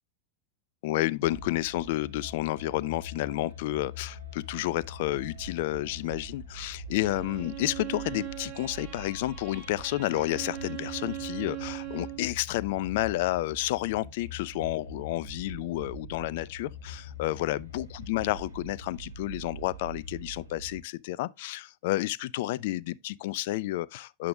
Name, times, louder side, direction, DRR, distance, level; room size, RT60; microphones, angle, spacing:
voice 1, 0.8-24.3, left 16 dB, 50° left, 0.3 m, -31 dB
sound 1, 1.2-20.8, left 1 dB, 80° right, 1.3 m, -44 dB
Bowed string instrument, 6.9-12.3, right 14 dB, 55° right, 2.8 m, -40 dB
8.5 x 6.7 x 2.4 m
figure-of-eight pair, 90°, 0 cm